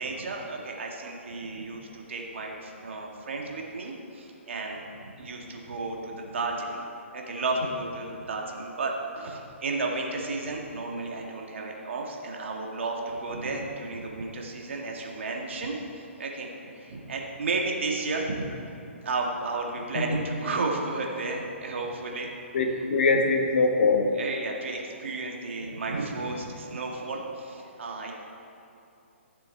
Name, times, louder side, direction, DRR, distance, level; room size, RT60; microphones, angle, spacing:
voice 1, 0.0-4.8 5.2-6.8 7.1-18.5 19.0-22.3 24.1-28.1, right 3 dB, 65° right, 0 dB, 1.9 m, -33 dB
voice 2, 22.5-24.1, left 3 dB, 60° left, 3 dB, 1.4 m, -23 dB
15.0 x 6.9 x 4.5 m, 2.7 s
figure-of-eight pair, 130°, 7 cm